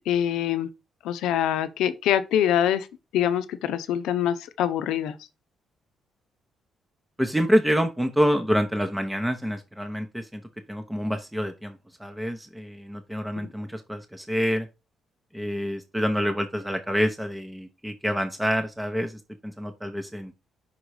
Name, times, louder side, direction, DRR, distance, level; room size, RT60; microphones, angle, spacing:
voice 1, 0.1-0.7 1.0-2.9 3.1-5.1, left 10 dB, 90° left, 0.6 m, -24 dB
voice 2, 7.2-10.4 10.7-14.7 15.3-20.3, equal, 5° right, 0.7 m, -27 dB
5.7 x 3.8 x 4.7 m
cardioid pair, 90°, 0 cm